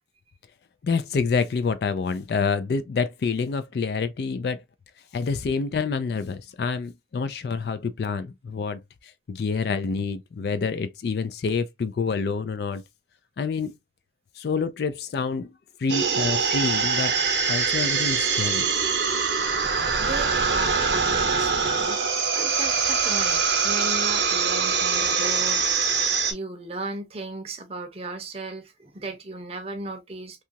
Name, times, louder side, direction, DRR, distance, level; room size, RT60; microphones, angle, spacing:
voice 1, 0.8-4.6 5.1-8.8 9.3-12.8 13.4-13.7 14.4-15.5 15.8-17.1 17.5-18.7, left 5 dB, 60° left, 0.3 m, -27 dB
sound 1, 15.9-26.3, right 5 dB, 75° right, 0.7 m, -23 dB
voice 2, 20.0-30.4, right 2 dB, 35° right, 0.6 m, -36 dB
2.8 x 2.4 x 2.7 m
head